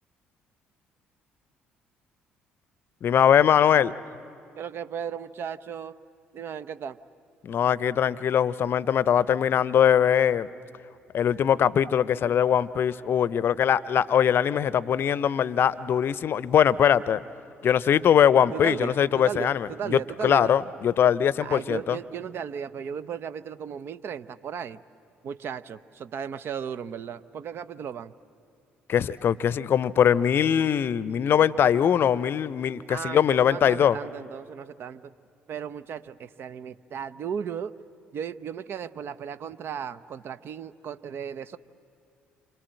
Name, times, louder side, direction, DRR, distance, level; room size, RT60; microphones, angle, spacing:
voice 1, 3.0-3.9 7.4-10.5 11.1-17.2 17.6-22.0 28.9-34.0, left 9 dB, 50° left, 19 dB, 0.6 m, -22 dB
voice 2, 4.6-6.0 6.3-7.0 18.5-20.5 21.4-24.8 25.2-28.1 32.9-35.1 35.5-37.7 38.1-41.6, right 7 dB, 50° right, 14 dB, 0.7 m, -35 dB
28.5 x 26.5 x 7.7 m, 2.5 s
figure-of-eight pair, 50°, 5 cm